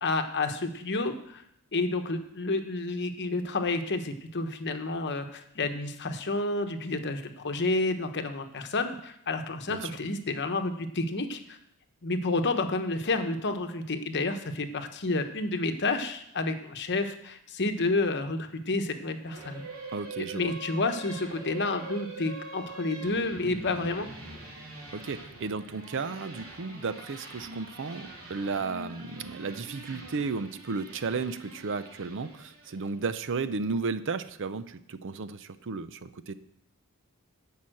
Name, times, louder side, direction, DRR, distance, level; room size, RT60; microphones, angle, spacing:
voice 1, 0.0-1.4 1.7-11.6 12.0-19.6 20.2-24.1, left 3 dB, 50° left, 7 dB, 1.0 m, -30 dB
sound 1, 19.2-32.9, right 2 dB, 75° right, 3.3 m, -44 dB
voice 2, 19.9-20.5 24.9-36.3, right 4 dB, 60° right, 13 dB, 0.6 m, -34 dB
11.0 x 5.6 x 7.7 m, 0.75 s
head